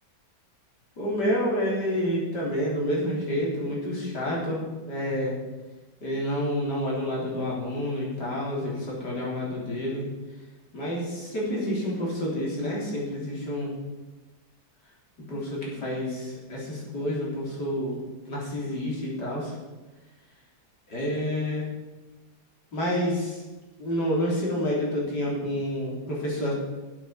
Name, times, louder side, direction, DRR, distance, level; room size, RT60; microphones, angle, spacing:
voice 1, 1.0-5.3 6.0-10.1 10.7-13.7 15.2-19.6 20.9-21.7 22.7-23.4 23.8-26.5, equal, 90° left, -4 dB, 4.3 m, -29 dB
12.5 x 8.2 x 6.4 m, 1.2 s
omnidirectional pair, 1.8 m